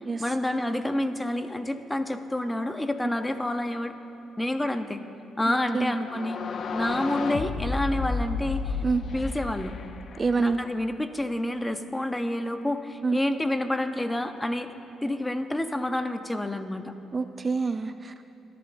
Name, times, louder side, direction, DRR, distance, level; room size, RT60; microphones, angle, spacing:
voice 1, 0.2-3.9 4.4-5.0 5.4-6.4 6.7-8.8 9.1-9.8 10.4-14.7 15.0-16.9, left 1 dB, 10° left, 8 dB, 0.7 m, -28 dB
sound 1, 6.0-10.8, left 4 dB, 55° left, 0.6 m, -32 dB
voice 2, 10.2-10.6 13.0-13.2 17.1-18.2, right 4 dB, 35° right, 10 dB, 0.3 m, -26 dB
23.5 x 11.0 x 2.6 m, 2.9 s
cardioid pair, 90°, 0 cm